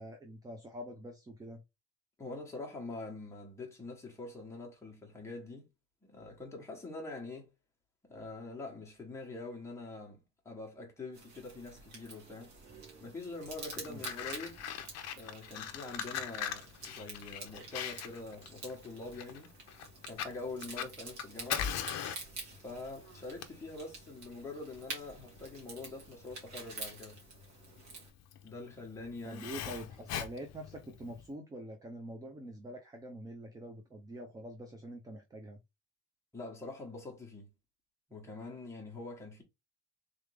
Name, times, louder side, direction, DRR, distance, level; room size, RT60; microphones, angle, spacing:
voice 1, 0.0-1.6 13.9-14.0 29.2-35.6, right 1 dB, 10° right, 0.4 m, -45 dB
voice 2, 2.2-5.7 6.0-7.5 8.0-10.2 10.4-12.5 13.0-14.6 15.1-19.5 20.0-21.7 22.5-27.2 28.4-29.4 36.3-37.5 38.1-39.4, left 3 dB, 10° left, 1.2 m, -44 dB
sound 1, 11.1-28.1, right 3 dB, 60° right, 2.0 m, -49 dB
Fire, 13.5-31.3, left 9 dB, 55° left, 0.6 m, -41 dB
3.6 x 3.4 x 3.3 m
cardioid pair, 175°, 31 cm